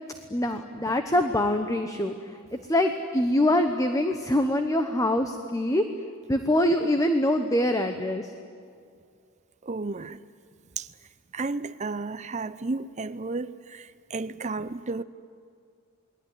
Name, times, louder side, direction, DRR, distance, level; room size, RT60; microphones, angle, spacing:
voice 1, 0.3-2.1 2.7-5.8 6.3-8.3, left 1 dB, 15° left, 1.1 m, -24 dB
voice 2, 9.6-10.2 10.8-10.9 11.3-15.0, right 3 dB, 35° right, 0.6 m, -33 dB
29.0 x 20.5 x 9.9 m
head